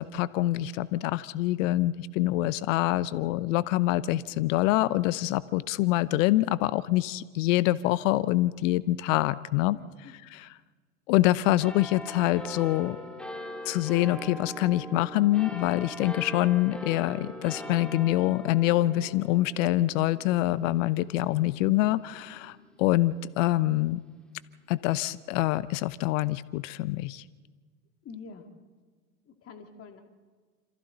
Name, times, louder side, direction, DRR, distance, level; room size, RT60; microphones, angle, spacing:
voice 1, 0.0-10.5 11.1-13.0 13.7-24.0 24.7-27.2, left 16 dB, 60° left, 18 dB, 0.8 m, -25 dB
voice 2, 9.7-10.1 28.0-28.5 29.3-30.0, left 5 dB, 30° left, 4 dB, 2.4 m, -46 dB
sound 1, 11.6-24.5 25.1-25.2, left 1 dB, ahead, 3.0 m, -42 dB
27.0 x 27.0 x 4.0 m, 1.5 s
hypercardioid pair, 100°, 43 cm